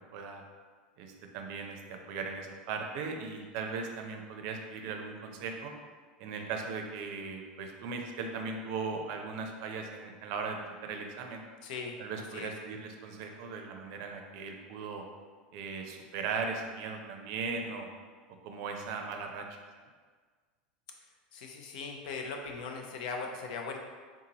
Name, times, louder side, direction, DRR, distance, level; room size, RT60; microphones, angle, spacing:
voice 1, 0.1-0.4 1.0-5.7 6.2-11.4 12.0-15.1 15.5-17.9 18.4-19.5 19.8-19.9, right 4 dB, 60° right, 3 dB, 0.5 m, -38 dB
voice 2, 11.6-12.0 12.3-12.5 21.3-23.8, left 4 dB, 70° left, 2 dB, 0.5 m, -39 dB
3.7 x 2.6 x 2.8 m, 1.5 s
hypercardioid pair, 100°, 5 cm